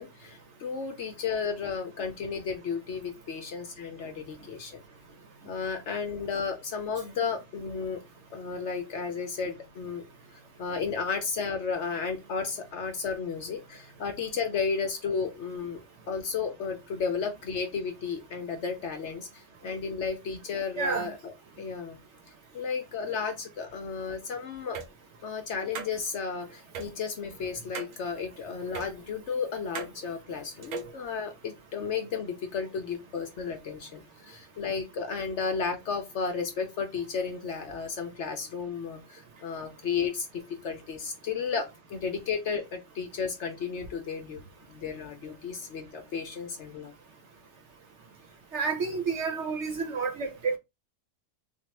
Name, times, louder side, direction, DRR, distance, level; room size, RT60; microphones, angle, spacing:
voice 1, 0.0-4.8 5.4-8.0 8.3-10.0 10.6-15.8 16.1-22.0 22.5-24.8 25.2-44.4 44.7-46.9, left 5 dB, 60° left, 0.9 m, -33 dB
sound 1, 24.7-24.9 25.8-25.9 26.7-26.9 27.7-28.0 28.7-28.9 29.8-29.9 30.6-30.9, right 6 dB, 90° right, 1.2 m, -36 dB
voice 2, 48.5-50.6, right 5 dB, 55° right, 0.9 m, -29 dB
3.6 x 2.4 x 3.1 m
omnidirectional pair, 1.6 m